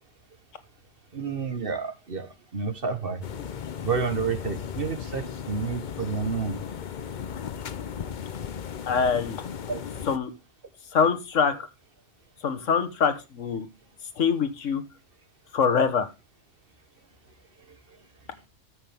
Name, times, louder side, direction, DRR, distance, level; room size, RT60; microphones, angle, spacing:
voice 1, 1.1-3.2 3.8-6.6 9.7-9.8, right 5 dB, 50° right, 9 dB, 1.4 m, -30 dB
sound 1, 3.2-10.2, left 8 dB, 45° left, 0.7 m, -36 dB
voice 2, 8.9-9.4 10.1-10.3 10.9-11.6 12.4-13.7 14.2-14.8 15.5-16.1, left 6 dB, 75° left, 11 dB, 1.6 m, -24 dB
13.5 x 6.5 x 3.4 m, 0.25 s
omnidirectional pair, 1.3 m